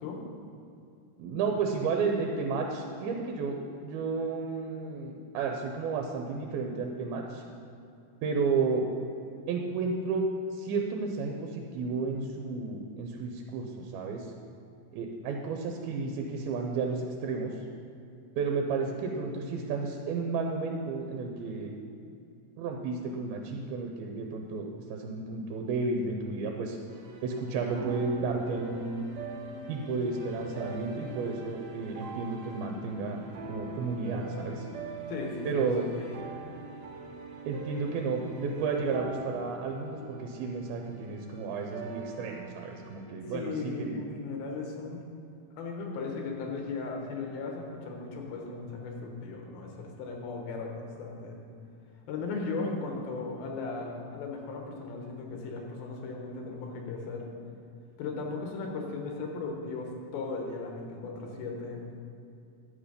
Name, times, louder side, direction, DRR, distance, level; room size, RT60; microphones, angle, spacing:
voice 1, 1.2-7.4 8.2-8.9 9.5-10.2 10.5-14.3 14.9-17.6 18.4-21.7 22.6-26.8 27.2-29.1 29.7-33.2 33.5-34.7 35.4-35.8 37.5-44.0, right 4 dB, 85° right, 2 dB, 2.6 m, -32 dB
sound 1, 26.9-43.0, right 3 dB, 65° right, 1.7 m, -43 dB
voice 2, 35.1-35.9 43.3-45.0 45.5-51.4 52.1-57.3 58.0-61.8, left 3 dB, 85° left, 1 dB, 3.0 m, -37 dB
10.5 x 7.3 x 5.1 m, 2.5 s
omnidirectional pair, 4.3 m